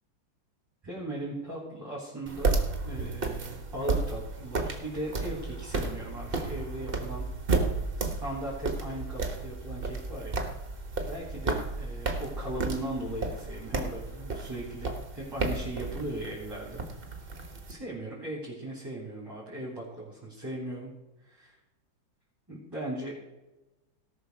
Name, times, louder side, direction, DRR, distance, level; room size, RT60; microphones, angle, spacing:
voice 1, 0.8-7.3 8.0-10.4 10.9-16.8 17.7-20.9 21.2-21.6 22.5-23.1, right 1 dB, 10° right, -6 dB, 3.3 m, -38 dB
sound 1, 2.3-17.7, right 3 dB, 30° right, 1.3 m, -33 dB
17.5 x 6.2 x 4.6 m, 1.0 s
omnidirectional pair, 2.2 m